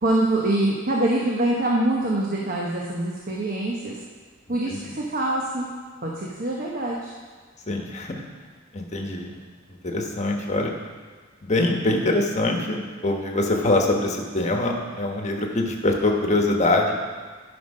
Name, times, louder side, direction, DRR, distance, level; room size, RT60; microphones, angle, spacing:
voice 1, 0.0-4.0 4.5-5.7 6.0-7.1, right 1 dB, 45° right, -2 dB, 1.0 m, -24 dB
voice 2, 7.7-8.1 8.7-9.3 9.8-10.7 11.4-17.0, left 2 dB, 35° left, 1 dB, 1.2 m, -23 dB
12.0 x 5.4 x 5.4 m, 1.5 s
head